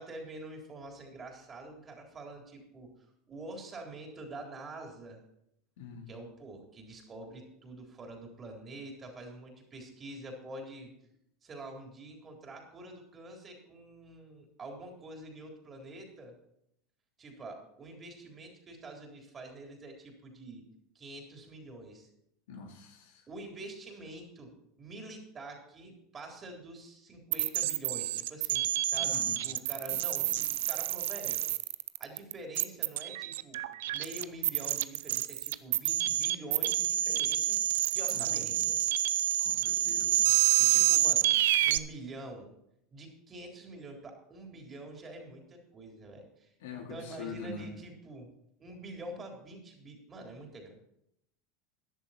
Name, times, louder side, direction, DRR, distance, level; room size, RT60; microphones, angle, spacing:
voice 1, 0.0-2.9 3.3-5.2 6.1-10.9 11.4-16.3 17.2-20.6 20.9-22.1 23.3-31.4 32.0-33.6 33.9-37.6 37.9-38.8 40.6-41.3 41.6-42.5 42.9-48.3 48.6-50.7, right 2 dB, 30° right, 2 dB, 3.9 m, -46 dB
voice 2, 5.8-6.1 22.5-23.2 29.0-29.4 30.3-30.4 38.1-38.4 39.4-40.2 46.6-47.7, left 5 dB, 75° left, 2 dB, 2.5 m, -44 dB
sound 1, 27.3-41.8, right 14 dB, 75° right, 0.5 m, -28 dB
13.5 x 10.5 x 4.4 m, 0.78 s
hypercardioid pair, 85°, 0 cm